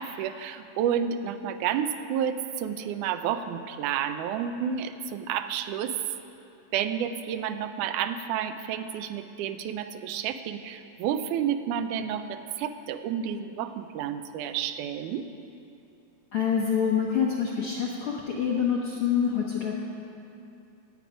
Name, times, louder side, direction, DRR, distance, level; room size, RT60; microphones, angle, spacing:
voice 1, 0.0-6.0 6.7-15.3, right 8 dB, 85° right, 9 dB, 2.0 m, -30 dB
voice 2, 16.3-19.7, left 7 dB, 70° left, -2 dB, 1.3 m, -26 dB
17.0 x 8.4 x 5.0 m, 2.7 s
omnidirectional pair, 3.6 m